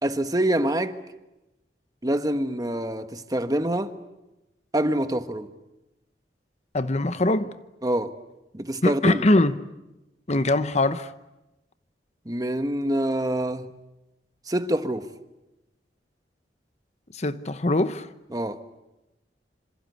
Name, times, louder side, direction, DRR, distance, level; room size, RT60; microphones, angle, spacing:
voice 1, 0.0-0.9 2.0-3.9 4.7-5.5 7.8-8.1 8.5-9.2 12.2-13.7 14.5-15.1 18.3-18.6, right 1 dB, 20° right, 1.4 m, -25 dB
voice 2, 6.7-7.5 8.8-9.6 10.3-11.1 17.1-18.1, left 2 dB, 40° left, 1.0 m, -22 dB
27.0 x 26.5 x 8.2 m
head